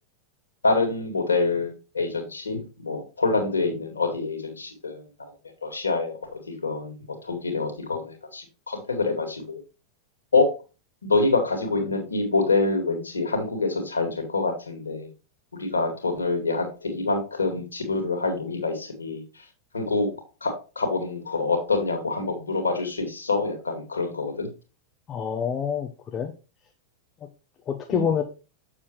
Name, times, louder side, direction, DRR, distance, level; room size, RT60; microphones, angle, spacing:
voice 1, 0.6-5.3 5.6-9.4 10.3-10.5 11.0-15.1 15.6-19.2 19.7-20.1 20.4-24.5 27.9-28.1, left 3 dB, 75° left, 3 dB, 2.3 m, -26 dB
voice 2, 25.1-26.3 27.7-28.2, left 7 dB, 25° left, 4 dB, 0.8 m, -27 dB
7.0 x 7.0 x 3.1 m, 0.32 s
figure-of-eight pair, 90°, 0 cm